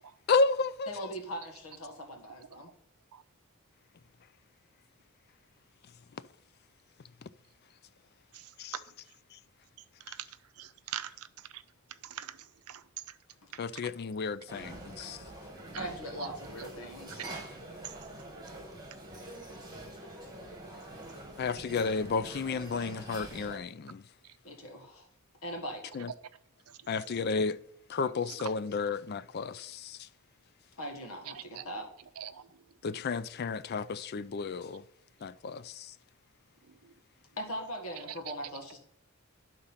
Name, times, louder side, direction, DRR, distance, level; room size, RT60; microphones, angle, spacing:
voice 1, 0.3-0.9 8.6-8.7 13.6-15.2 21.4-24.0 25.9-26.1 26.9-27.6 27.9-30.0 32.8-34.8 35.2-35.9, left 4 dB, 45° left, 0.3 m, -32 dB
voice 2, 0.9-2.7 13.4-13.5 15.0-15.1 15.7-17.4 24.4-25.1 25.4-25.8 30.8-31.9 37.4-38.8, equal, 70° left, 1.4 m, -40 dB
voice 3, 8.3-8.8 10.1-10.3 10.6-11.3 11.5-11.6 12.0-12.8 13.5-13.7 15.7-15.8 16.6-16.7 17.2-17.3 17.8-17.9 31.6-31.7 32.2-32.5 38.3-38.4, right 10 dB, 80° right, 0.5 m, -42 dB
sound 1, 14.5-23.6, right 1 dB, 20° right, 1.6 m, -45 dB
11.0 x 3.9 x 5.7 m
head